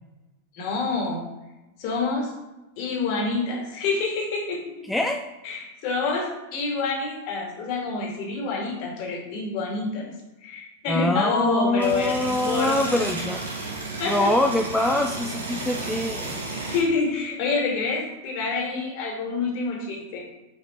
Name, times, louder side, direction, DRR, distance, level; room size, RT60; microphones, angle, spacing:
voice 1, 0.5-1.2 1.8-2.3 2.8-4.9 5.4-10.1 10.4-13.0 14.0-14.3 16.7-20.3, left 4 dB, 45° left, -1 dB, 2.3 m, -27 dB
voice 2, 4.9-5.2 10.9-13.4 14.1-16.4, left 1 dB, 5° left, 3 dB, 0.4 m, -24 dB
sound 1, 11.8-16.8, right 3 dB, 70° right, 1.8 m, -33 dB
6.3 x 5.1 x 4.4 m, 1.0 s
figure-of-eight pair, 90°, 0 cm